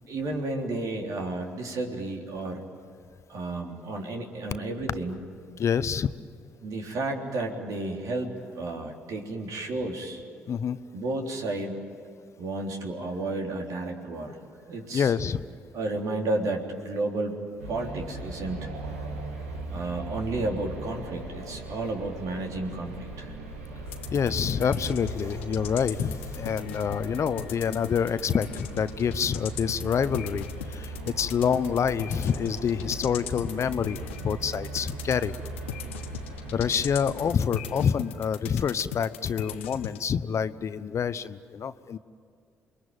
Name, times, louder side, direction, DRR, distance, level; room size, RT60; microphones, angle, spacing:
voice 1, 0.1-2.6 3.3-5.2 6.6-10.2 10.9-11.8 12.4-14.4 14.7-15.1 15.7-18.7 19.7-23.3, right 2 dB, 65° right, 1 dB, 3.6 m, -32 dB
voice 2, 5.6-6.1 10.5-10.8 14.9-15.5 24.1-34.0 34.2-35.4 36.5-42.0, left 7 dB, 50° left, 14 dB, 0.9 m, -27 dB
sound 1, 17.6-37.3, right 2 dB, 90° right, 2.1 m, -39 dB
sound 2, 23.9-40.0, left 9 dB, 90° left, 0.8 m, -40 dB
27.5 x 22.0 x 9.3 m, 2.4 s
hypercardioid pair, 45°, 6 cm